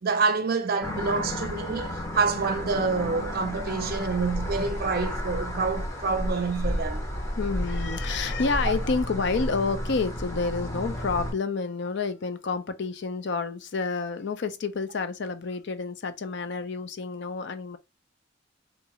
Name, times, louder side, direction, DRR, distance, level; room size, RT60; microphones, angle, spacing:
voice 1, 0.0-7.1, right 4 dB, 50° right, 0.5 m, -27 dB
sound 1, 0.8-11.3, equal, 15° left, 0.7 m, -32 dB
voice 2, 7.4-17.8, left 4 dB, 65° left, 0.5 m, -29 dB
3.6 x 2.5 x 3.0 m
head